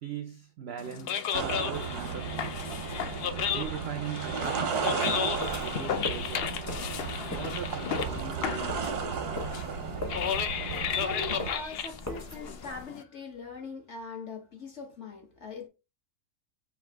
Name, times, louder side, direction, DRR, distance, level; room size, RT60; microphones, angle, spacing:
voice 1, 0.0-2.6 3.5-5.3 5.6-6.5 7.3-8.9, right 8 dB, 70° right, 0.6 m, -40 dB
sound 1, 0.8-13.0, left 8 dB, 85° left, 0.5 m, -34 dB
sound 2, 1.3-11.5, right 5 dB, 90° right, 1.3 m, -34 dB
sound 3, 5.4-12.8, left 2 dB, 15° left, 0.7 m, -41 dB
voice 2, 10.4-15.7, left 3 dB, 55° left, 1.1 m, -41 dB
5.8 x 2.8 x 3.3 m
omnidirectional pair, 1.6 m